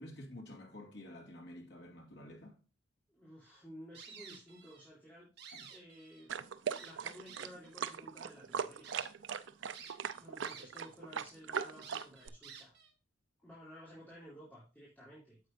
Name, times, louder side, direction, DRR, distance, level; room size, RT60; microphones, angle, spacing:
voice 1, 0.0-2.6 5.5-5.7, left 1 dB, 60° left, 2.4 m, -50 dB
voice 2, 3.1-5.3 5.6-9.1 10.1-12.7 13.4-15.4, equal, 10° left, 3.5 m, -54 dB
sound 1, 3.9-4.9 5.2-6.3 6.7-7.7 8.3-8.4 8.8-9.1 9.7-10.9 11.2-11.3 11.8-12.9, right 7 dB, 60° right, 1.8 m, -52 dB
sound 2, 6.3-12.3, right 7 dB, 80° right, 0.5 m, -39 dB
9.1 x 7.6 x 2.6 m
head